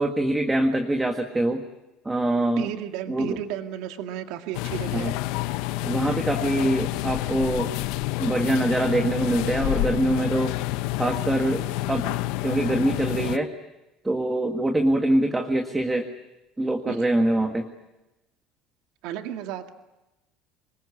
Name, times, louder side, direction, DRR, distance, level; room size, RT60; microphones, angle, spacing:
voice 1, 0.0-1.6 2.0-2.7 3.1-3.4 4.9-5.1 5.8-7.7 8.2-10.5 11.0-12.1 12.4-13.5 14.0-16.1 16.6-17.7, right 1 dB, 10° right, 5 dB, 1.7 m, -24 dB
voice 2, 2.6-5.1 16.8-17.1 19.0-19.7, right 11 dB, 70° right, 7 dB, 2.1 m, -33 dB
sound 1, 4.5-13.4, left 17 dB, 75° left, 0.9 m, -28 dB
25.5 x 21.5 x 9.8 m, 1.0 s
cardioid pair, 150°, 0 cm